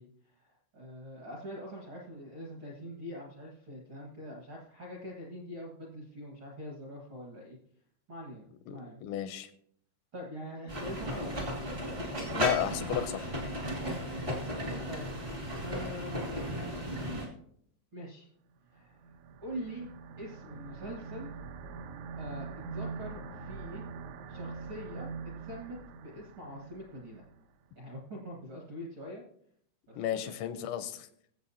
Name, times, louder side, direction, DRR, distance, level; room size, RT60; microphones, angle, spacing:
voice 1, 0.0-7.6 8.1-9.0 10.1-11.5 13.9-14.3 14.9-15.1 15.6-16.7 17.9-18.3 18.7-19.0 19.4-19.9 20.2-21.3 22.2-23.9 24.3-25.1 25.4-27.2 27.7-29.2 29.9-30.3, equal, 60° right, -2 dB, 1.3 m, -44 dB
voice 2, 8.7-9.5 12.3-13.3 30.0-31.1, left 10 dB, 85° left, 11 dB, 2.8 m, -33 dB
sound 1, 10.7-17.3, equal, 40° right, 0.7 m, -35 dB
sound 2, 18.8-27.4, right 5 dB, 80° right, 3.1 m, -43 dB
22.5 x 7.6 x 2.8 m, 0.68 s
omnidirectional pair, 5.4 m